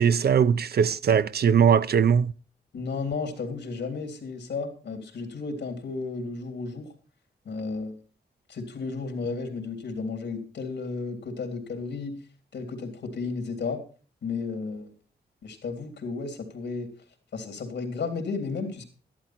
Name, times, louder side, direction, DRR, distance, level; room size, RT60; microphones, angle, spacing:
voice 1, 0.0-2.3, right 7 dB, 65° right, 0.5 m, -20 dB
voice 2, 2.7-6.9 7.4-8.0 8.5-12.2 12.5-13.8 14.2-14.9 15.4-16.9 17.3-18.8, left 4 dB, 90° left, 3.2 m, -33 dB
12.5 x 12.0 x 4.4 m
cardioid pair, 60°, 18 cm